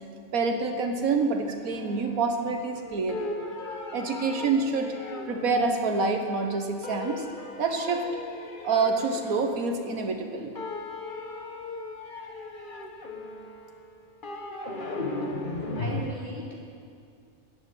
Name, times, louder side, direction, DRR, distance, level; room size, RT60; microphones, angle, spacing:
voice 1, 0.3-3.3 3.9-4.9 5.3-7.3 7.6-8.1 8.6-10.5, right 4 dB, 90° right, 4 dB, 1.7 m, -27 dB
sound 1, 1.7-2.8 3.1-6.4 6.8-10.3 10.6-16.0, left 2 dB, 40° left, 1.3 m, -37 dB
Wind instrument woodwind instrument, 2.2-5.6 5.9-7.5 7.8-8.1 8.3-9.0 9.3-9.5, left 3 dB, 50° right, 3.9 m, -49 dB
voice 2, 15.4-16.6, right 1 dB, 15° right, -6 dB, 3.5 m, -39 dB
15.0 x 8.9 x 9.6 m, 2.3 s
omnidirectional pair, 1.4 m